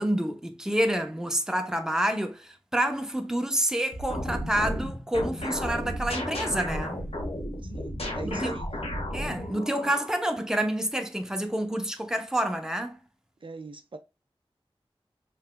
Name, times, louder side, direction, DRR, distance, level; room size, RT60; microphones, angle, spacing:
voice 1, 0.0-7.0 8.2-8.5 9.1-13.0, right 1 dB, 5° right, 0.8 m, -28 dB
sound 1, 3.9-10.1, left 1 dB, 85° left, 1.3 m, -33 dB
voice 2, 7.6-8.7 13.4-14.0, right 3 dB, 60° right, 0.5 m, -41 dB
5.6 x 3.4 x 2.2 m
wide cardioid pair, 60°, 10 cm